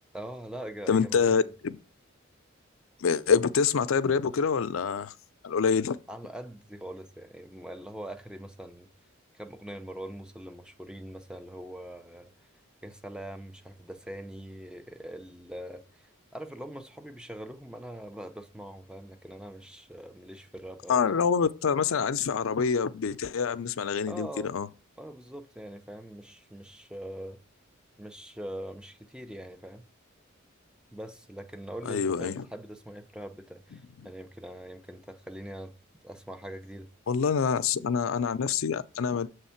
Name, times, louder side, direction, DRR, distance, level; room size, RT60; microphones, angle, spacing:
voice 1, 0.1-1.5 6.1-8.9 9.3-12.5 12.8-21.0 24.1-24.5 25.0-27.4 28.0-29.8 30.9-35.7 36.0-36.9, right 1 dB, 5° right, 0.5 m, -42 dB
voice 2, 0.9-1.7 3.0-5.1 5.4-6.0 20.9-24.7 31.8-32.4 37.1-39.3, left 6 dB, 75° left, 0.5 m, -26 dB
7.2 x 3.4 x 5.7 m
head